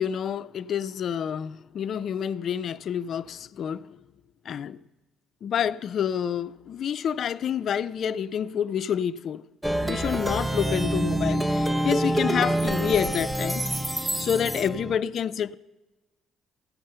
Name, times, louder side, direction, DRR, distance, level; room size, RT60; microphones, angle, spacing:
voice 1, 0.0-4.0 4.5-4.8 5.4-9.4 9.8-13.6 14.2-15.5, left 8 dB, 60° left, 0.3 m, -28 dB
Plucked string instrument, 9.6-15.0, right 1 dB, 10° right, 0.6 m, -26 dB
14.5 x 5.4 x 7.8 m
supercardioid pair, 70°, 0 cm